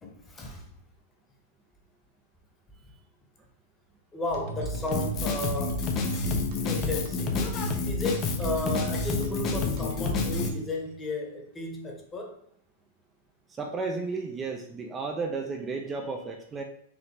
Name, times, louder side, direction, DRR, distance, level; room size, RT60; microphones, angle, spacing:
voice 1, 0.0-0.7 4.1-5.9 6.7-7.4 7.8-12.4, left 2 dB, 20° left, 1 dB, 1.3 m, -34 dB
sound 1, 4.3-10.9, right 1 dB, 60° right, 1.1 m, -35 dB
Drum kit, 4.9-10.5, left 4 dB, 35° left, 0.8 m, -30 dB
voice 2, 13.5-16.6, right 4 dB, 25° right, 3 dB, 0.6 m, -33 dB
5.0 x 3.0 x 3.5 m, 0.70 s
hypercardioid pair, 110°, 0 cm